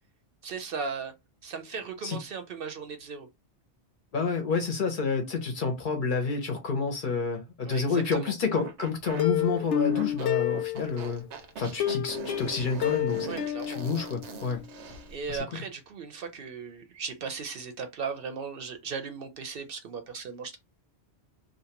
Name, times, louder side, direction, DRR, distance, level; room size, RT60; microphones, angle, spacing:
voice 1, 0.4-1.1 1.4-3.3 7.6-8.3 13.2-13.8 15.1-20.6, right 5 dB, 60° right, 0.7 m, -37 dB
voice 2, 4.1-11.2 11.6-13.3 13.7-14.6 15.3-15.6, left 4 dB, 55° left, 0.7 m, -29 dB
sound 1, 8.6-15.2, right 6 dB, 85° right, 0.9 m, -42 dB
Plucked string instrument, 9.2-11.2 11.8-14.6 14.9-15.0 15.4-15.5, left 12 dB, 90° left, 0.9 m, -30 dB
2.6 x 2.1 x 2.8 m
omnidirectional pair, 1.1 m